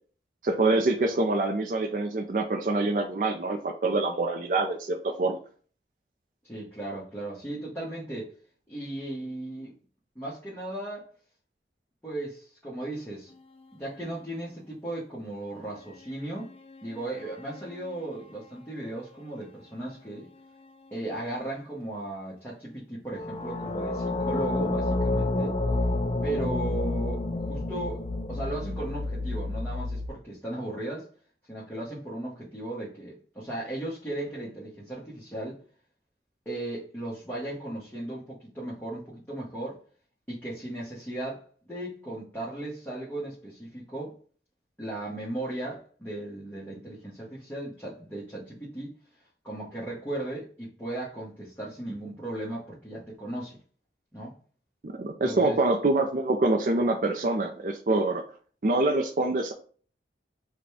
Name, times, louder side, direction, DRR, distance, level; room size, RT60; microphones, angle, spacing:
voice 1, 0.4-5.4 54.8-58.2 58.6-59.5, right 2 dB, 45° right, 0.4 m, -25 dB
voice 2, 6.4-8.3 8.7-9.7 10.1-11.1 12.0-13.3 13.7-16.5 16.8-20.3 20.9-25.6 26.2-31.1 31.5-35.6 36.4-39.8 40.3-44.2 44.8-48.9 49.4-53.6 54.1-54.3 55.2-55.6, right 1 dB, 10° left, 1.0 m, -36 dB
sound 1, 16.7-18.0 23.1-30.1, left 2 dB, 30° left, 0.4 m, -30 dB
4.9 x 2.2 x 4.7 m
head